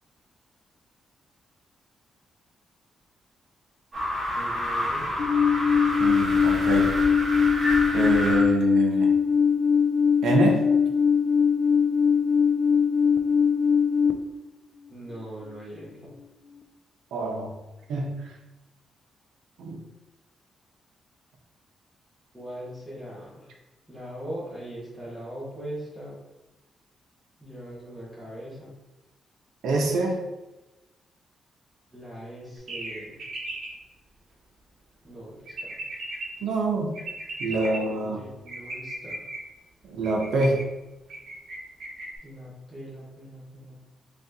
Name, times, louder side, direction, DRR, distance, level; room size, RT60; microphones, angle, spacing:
sound 1, 3.9-8.4, equal, 35° right, 1.4 m, -29 dB
voice 1, 4.4-5.1 14.9-16.1 22.3-23.5 23.9-26.2 27.4-28.7 31.9-33.2 35.0-35.8 37.5-39.2 42.2-43.9, right 1 dB, ahead, -8 dB, 1.4 m, -40 dB
Alarm, 5.2-14.1, left 6 dB, 55° left, 0.3 m, -21 dB
voice 2, 6.0-6.9 7.9-9.1 10.2-10.7 17.1-17.5 17.9-18.3 19.6-19.8 29.6-30.2 36.4-37.0 37.4-38.2 39.8-40.7, right 3 dB, 85° right, 1 dB, 0.7 m, -26 dB
sound 2, 32.7-33.7 35.5-36.3 36.9-37.8 38.5-39.4 40.0-40.6 41.1-41.5 41.8-42.2, right 2 dB, 65° right, 1.1 m, -36 dB
4.2 x 3.1 x 2.7 m, 1.0 s
wide cardioid pair, 170°, 0 cm